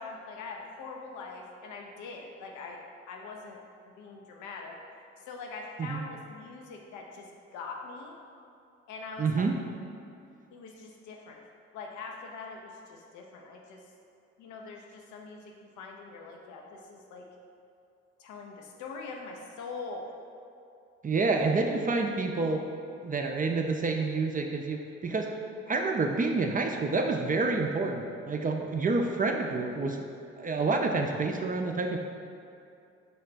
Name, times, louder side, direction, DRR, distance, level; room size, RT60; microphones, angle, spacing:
voice 1, 0.0-2.8 3.1-3.6 3.8-4.8 5.3-8.2 8.9-9.5 10.5-11.4 11.7-13.8 14.4-15.4 15.8-17.3 18.2-20.1, left 4 dB, 70° left, 1 dB, 0.6 m, -43 dB
voice 2, 9.2-9.6 21.0-22.6 23.0-25.3 25.7-30.0 30.4-32.0, right 3 dB, 30° right, 3 dB, 0.4 m, -28 dB
5.3 x 2.1 x 4.1 m, 2.5 s
hypercardioid pair, 50°, 30 cm